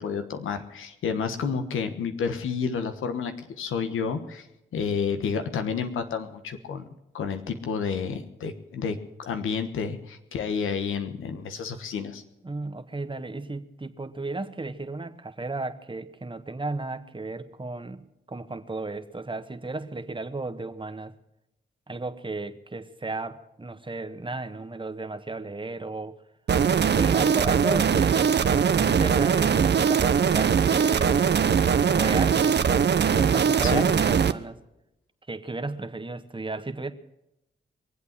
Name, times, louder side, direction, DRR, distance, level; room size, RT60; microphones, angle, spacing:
voice 1, 0.0-4.5 4.7-6.9 7.1-12.2 33.6-33.9, left 6 dB, 85° left, 8 dB, 1.3 m, -30 dB
voice 2, 12.4-18.0 18.3-21.1 21.9-26.2 26.9-31.3 31.9-32.9 33.1-34.6 35.3-36.9, right 2 dB, 25° right, 9 dB, 1.5 m, -34 dB
sound 1, 26.5-34.3, right 7 dB, 60° right, 0.8 m, -21 dB
22.5 x 8.2 x 7.4 m, 0.88 s
supercardioid pair, 40°, 20 cm